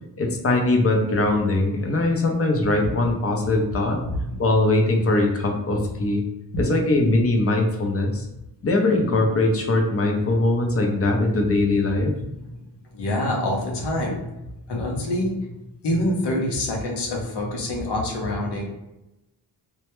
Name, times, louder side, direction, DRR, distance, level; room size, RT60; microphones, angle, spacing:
voice 1, 0.2-4.0 4.4-6.2 6.6-8.3 8.6-12.1, left 2 dB, 35° left, 2 dB, 0.6 m, -21 dB
voice 2, 4.1-4.4 6.5-6.6 12.0-12.1 12.5-12.6 12.9-14.2 14.7-15.6 15.8-18.6, left 1 dB, 75° left, -1 dB, 0.7 m, -26 dB
2.2 x 2.1 x 2.9 m, 0.94 s
cardioid pair, 65°, 40 cm